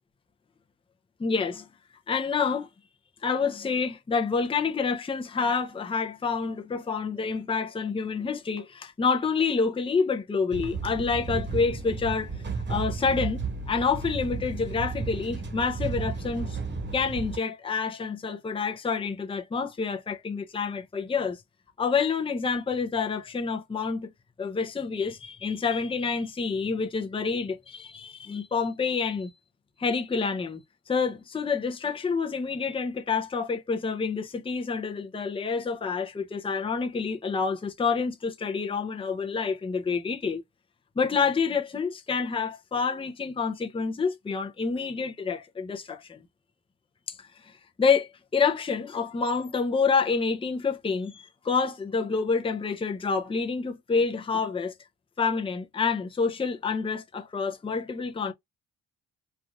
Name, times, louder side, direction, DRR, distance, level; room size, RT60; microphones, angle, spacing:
voice 1, 1.2-1.7 2.1-2.7 3.2-12.3 12.7-16.6 16.9-21.4 21.8-24.1 24.4-29.3 29.8-30.6 30.9-40.4 41.0-46.2 47.1-54.7 55.2-58.3, left 5 dB, 20° left, 0.6 m, -28 dB
sound 1, 10.5-17.4, right 4 dB, 35° right, 1.1 m, -33 dB
3.3 x 2.5 x 2.5 m
cardioid pair, 90°, 30 cm